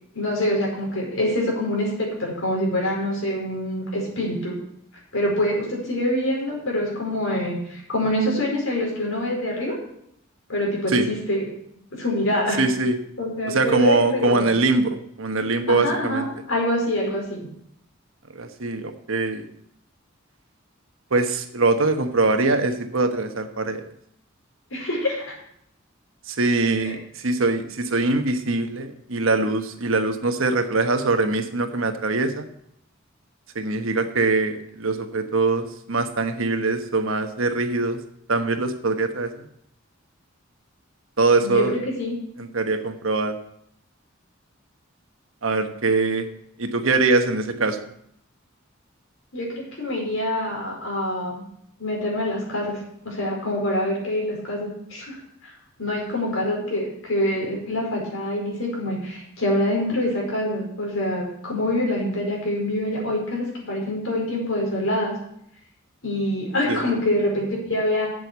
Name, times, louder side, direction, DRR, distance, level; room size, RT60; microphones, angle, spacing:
voice 1, 0.1-4.6 5.1-9.7 10.5-11.4 11.9-12.6 13.2-14.5 15.7-17.5 24.7-25.3 26.8-27.0 41.4-42.2 49.3-51.4 51.8-52.8 53.0-55.5 55.8-65.1 66.0-68.1, left 1 dB, 75° left, -2 dB, 5.0 m, -25 dB
voice 2, 12.6-12.9 13.5-16.3 18.3-19.5 21.1-23.8 26.3-32.5 33.5-38.0 38.3-39.5 41.2-41.7 42.4-43.4 45.4-46.3 46.6-47.8 66.7-66.8, right 3 dB, 75° right, 7 dB, 1.2 m, -22 dB
7.9 x 7.7 x 8.3 m, 0.73 s
head